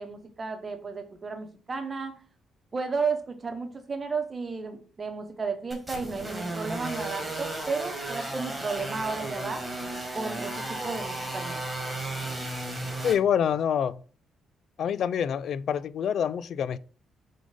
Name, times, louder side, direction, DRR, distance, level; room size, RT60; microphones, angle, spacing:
voice 1, 0.0-2.2 2.7-9.7 10.1-11.7, right 4 dB, 35° right, 1.1 m, -33 dB
sound 1, 5.7-13.1, right 2 dB, 15° right, 2.5 m, -34 dB
voice 2, 13.0-14.0 14.8-16.8, left 8 dB, 65° left, 0.3 m, -26 dB
5.0 x 3.8 x 5.0 m
cardioid pair, 90°, 0 cm